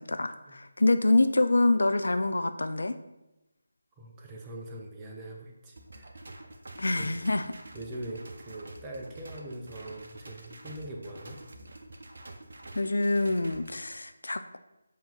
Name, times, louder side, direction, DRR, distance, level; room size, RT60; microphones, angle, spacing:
voice 1, 0.0-3.0 6.8-7.5 12.7-14.6, left 2 dB, 65° left, 10 dB, 0.4 m, -26 dB
voice 2, 4.0-6.2 7.0-7.1 7.7-11.4, right 1 dB, 15° right, 0 dB, 0.8 m, -42 dB
sound 1, 5.8-13.8, right 2 dB, 55° right, 0.8 m, -47 dB
7.3 x 2.9 x 5.3 m, 0.95 s
figure-of-eight pair, 155°, 0 cm